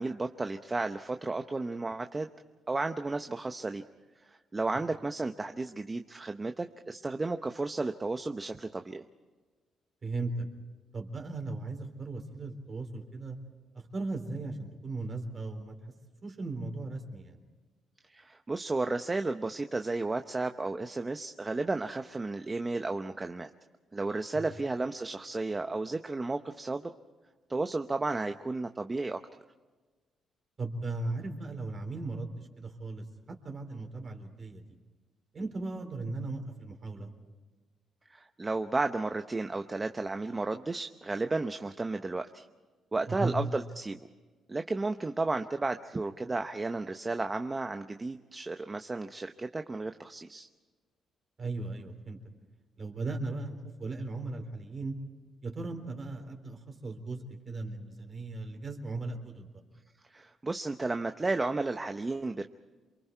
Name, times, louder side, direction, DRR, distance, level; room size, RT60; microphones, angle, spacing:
voice 1, 0.0-2.3 2.7-3.8 4.2-9.0 18.1-23.5 23.9-26.9 27.5-29.2 38.1-42.4 42.9-44.0 44.5-50.5 60.1-62.4, right 3 dB, 25° right, 7 dB, 0.9 m, -33 dB
voice 2, 10.0-10.5 10.9-13.4 13.7-15.8 16.2-17.4 24.3-24.4 30.6-34.7 35.3-37.1 43.1-43.3 51.4-52.2 52.8-55.0 55.4-59.5, right 3 dB, 40° right, 4 dB, 3.9 m, -37 dB
28.5 x 23.5 x 4.6 m, 1.3 s
cardioid pair, 90°, 0 cm